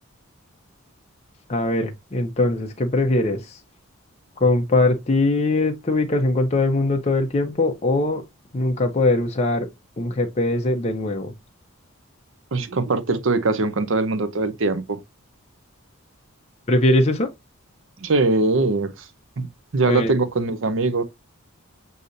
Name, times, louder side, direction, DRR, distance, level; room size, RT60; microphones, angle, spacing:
voice 1, 1.5-3.6 4.4-8.2 8.5-9.7 10.0-11.3 16.7-17.3 19.8-20.1, left 2 dB, 30° left, 0.5 m, -21 dB
voice 2, 12.5-15.0 18.0-19.1 19.4-19.5 19.7-21.0, right 3 dB, 60° right, 0.6 m, -22 dB
6.5 x 2.7 x 2.5 m
head